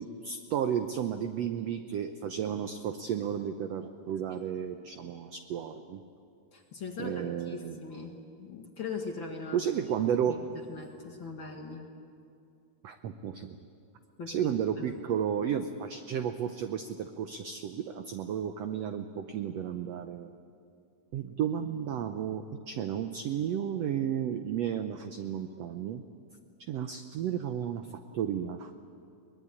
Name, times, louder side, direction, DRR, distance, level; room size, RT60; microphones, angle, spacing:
voice 1, 0.0-6.0 7.0-7.8 9.5-10.4 12.8-13.6 14.3-20.4 21.1-26.0 26.7-27.9 28.1-28.7, right 9 dB, 80° right, 7 dB, 1.5 m, -33 dB
voice 2, 6.5-9.6 10.3-11.9 14.2-15.0, left 4 dB, 45° left, 1 dB, 2.0 m, -41 dB
23.5 x 20.5 x 9.7 m, 2.4 s
omnidirectional pair, 4.0 m